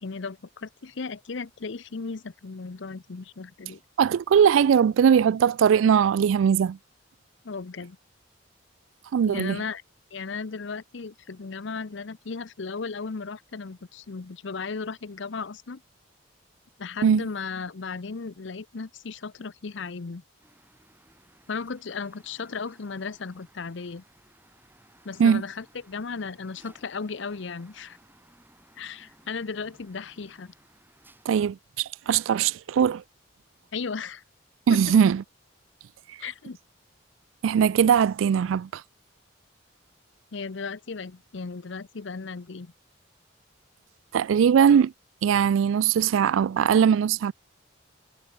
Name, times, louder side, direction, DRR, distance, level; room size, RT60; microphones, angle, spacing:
voice 1, 0.0-3.8 7.4-8.0 9.3-9.8 10.1-15.8 16.8-20.2 21.5-24.0 25.0-28.0 28.8-30.5 33.7-34.2 34.7-34.9 36.2-36.6 40.3-42.7, left 4 dB, 65° left, 0.7 m, -35 dB
voice 2, 4.0-6.8 9.1-9.6 17.0-17.2 25.2-25.4 31.3-33.0 34.7-35.2 37.4-38.8 44.1-44.9 45.2-47.3, right 7 dB, 80° right, 0.3 m, -20 dB
sound 1, 20.4-31.4, right 1 dB, 10° right, 7.2 m, -59 dB
head